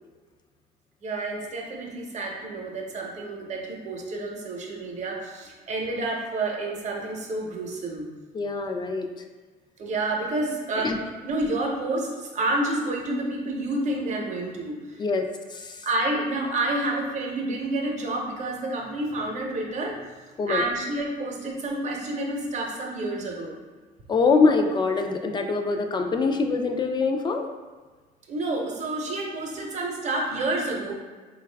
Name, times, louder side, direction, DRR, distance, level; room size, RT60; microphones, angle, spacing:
voice 1, 1.0-8.1 8.7-8.8 9.8-10.9 11.2-15.0 15.8-20.0 20.5-23.5 28.3-30.9, right 2 dB, 45° right, 0 dB, 0.8 m, -29 dB
voice 2, 8.3-9.1 10.8-11.0 15.0-15.9 20.4-20.6 24.1-27.5, left 4 dB, 25° left, 5 dB, 0.3 m, -24 dB
3.8 x 2.3 x 3.3 m, 1.4 s
cardioid pair, 110°, 17 cm